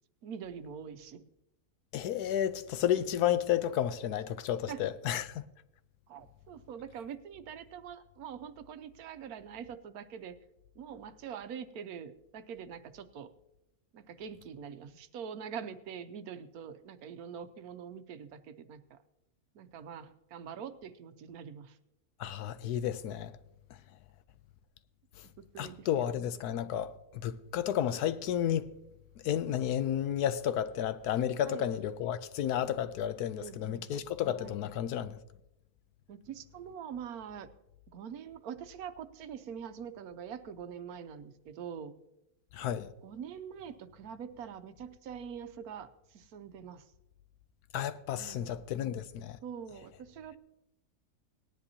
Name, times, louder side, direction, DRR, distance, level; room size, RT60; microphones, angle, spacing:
voice 1, 0.2-1.2 4.7-4.8 6.1-10.3 10.8-13.3 13.9-19.0 19.6-21.7 25.5-25.9 31.5-31.6 33.4-33.9 34.4-34.6 36.1-37.5 37.9-42.0 43.0-45.9 46.1-46.8 48.2-48.7 49.4-50.4, right 7 dB, 75° right, 1.1 m, -44 dB
voice 2, 1.9-5.4 22.2-23.3 25.6-28.7 29.2-35.2 42.5-42.9 47.7-49.4, left 10 dB, 85° left, 1.2 m, -32 dB
18.5 x 10.5 x 2.8 m
omnidirectional pair, 1.7 m